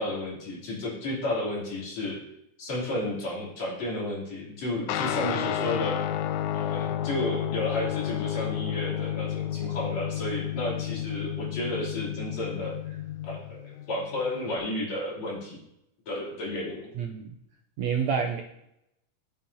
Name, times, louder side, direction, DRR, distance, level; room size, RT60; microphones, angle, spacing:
voice 1, 0.0-2.2 2.6-6.0 6.5-13.0 13.3-15.6 16.1-16.9, left 1 dB, 55° left, -5 dB, 4.4 m, -32 dB
Guitar, 4.9-14.6, left 11 dB, 80° left, 1.9 m, -31 dB
voice 2, 17.0-17.4 17.8-18.4, right 6 dB, 75° right, 2 dB, 1.7 m, -28 dB
13.5 x 8.7 x 2.8 m, 0.79 s
omnidirectional pair, 3.7 m